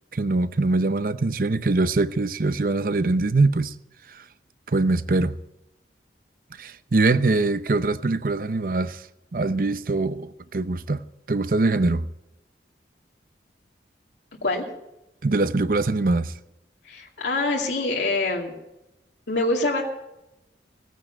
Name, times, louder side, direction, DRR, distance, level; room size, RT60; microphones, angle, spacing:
voice 1, 0.1-3.7 4.1-4.2 4.7-5.3 6.6-9.0 9.3-11.0 11.3-12.1 15.2-16.3, right 3 dB, 50° right, 0.6 m, -23 dB
voice 2, 16.9-18.5 19.3-19.8, left 2 dB, 85° left, 2.4 m, -25 dB
17.5 x 9.3 x 7.8 m
head